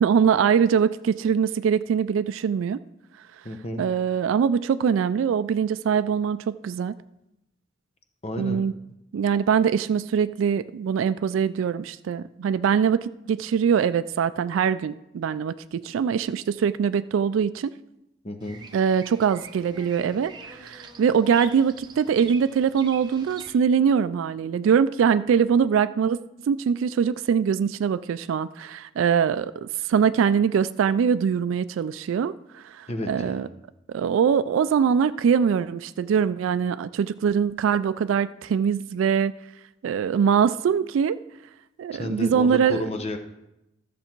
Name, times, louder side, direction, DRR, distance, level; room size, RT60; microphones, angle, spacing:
voice 1, 0.0-2.8 3.8-6.9 8.4-8.7 9.1-17.7 18.7-26.2 26.5-33.5 33.9-39.3 39.8-41.2 41.8-42.8, right 7 dB, 85° right, 13 dB, 0.3 m, -23 dB
voice 2, 3.4-3.8 8.2-8.6 18.2-18.6 32.9-33.5 41.9-43.2, left 1 dB, 30° left, 6 dB, 0.9 m, -31 dB
Bird vocalization bird call bird song, 18.4-23.5, right 4 dB, 20° right, 0.9 m, -44 dB
13.0 x 6.8 x 4.5 m, 0.90 s
head